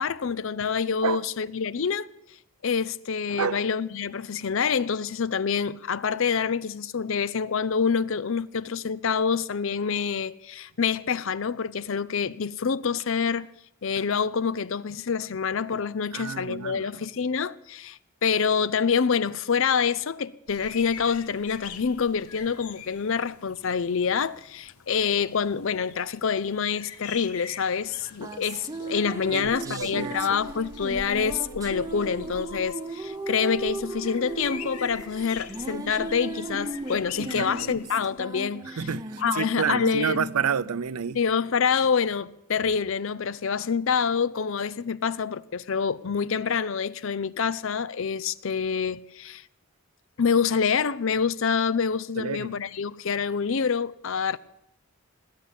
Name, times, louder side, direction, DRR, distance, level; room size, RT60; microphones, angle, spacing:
voice 1, 0.0-2.1 2.6-13.5 13.8-38.8 39.2-40.3 41.1-49.4 50.2-54.4, left 6 dB, 60° left, 0.5 m, -26 dB
voice 2, 16.1-17.0 29.3-30.4 37.2-37.8 38.7-41.2 52.2-52.5, right 7 dB, 80° right, 0.5 m, -30 dB
sound 1, 20.5-37.9, left 6 dB, 90° left, 1.1 m, -45 dB
sound 2, 27.9-41.6, right 2 dB, 15° right, 0.9 m, -37 dB
19.0 x 8.7 x 8.3 m
head